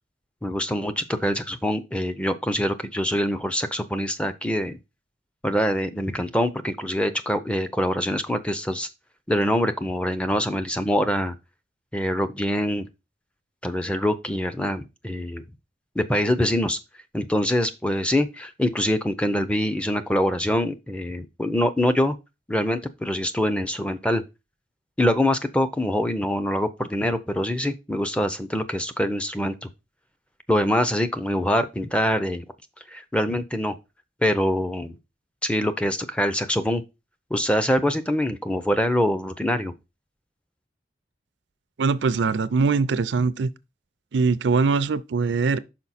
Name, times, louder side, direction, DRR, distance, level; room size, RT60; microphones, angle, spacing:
voice 1, 0.4-4.8 5.4-8.9 9.3-11.3 11.9-12.9 13.6-15.5 16.0-16.8 17.1-22.2 22.5-24.2 25.0-29.7 30.5-32.4 32.9-33.8 34.2-35.0 35.4-36.8 37.3-39.7, equal, 5° left, 0.5 m, -24 dB
voice 2, 41.8-43.5 44.1-45.6, right 4 dB, 80° right, 0.4 m, -22 dB
5.9 x 4.7 x 4.1 m
head